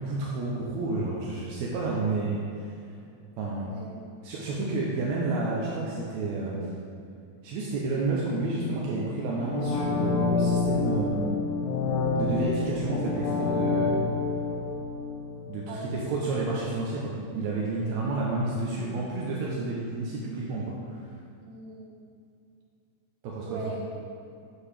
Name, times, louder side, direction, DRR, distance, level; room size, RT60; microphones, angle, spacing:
voice 1, 0.0-2.7 3.4-3.7 4.2-6.7 7.4-11.3 12.1-14.0 15.5-21.0 23.2-23.6, right 3 dB, 80° right, -4 dB, 2.0 m, -30 dB
sound 1, 9.4-16.2 16.6-16.7, left 4 dB, 80° left, 1.4 m, -28 dB
voice 2, 15.7-16.1 17.8-18.1 21.4-21.9 23.4-23.9, right 2 dB, 60° right, -4 dB, 2.1 m, -39 dB
7.4 x 6.5 x 3.3 m, 2.5 s
omnidirectional pair, 3.3 m